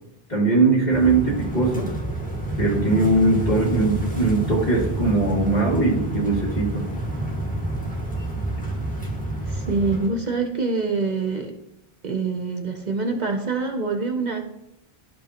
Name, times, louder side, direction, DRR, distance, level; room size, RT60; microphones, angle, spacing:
voice 1, 0.3-1.9 2.6-6.8, right 3 dB, 45° left, -4 dB, 2.1 m, -20 dB
sound 1, 0.9-10.1, right 1 dB, 10° left, 1.6 m, -28 dB
voice 2, 9.5-11.5 12.0-14.4, right 3 dB, 50° right, 4 dB, 0.7 m, -25 dB
12.0 x 5.3 x 2.9 m, 0.86 s
omnidirectional pair, 1.0 m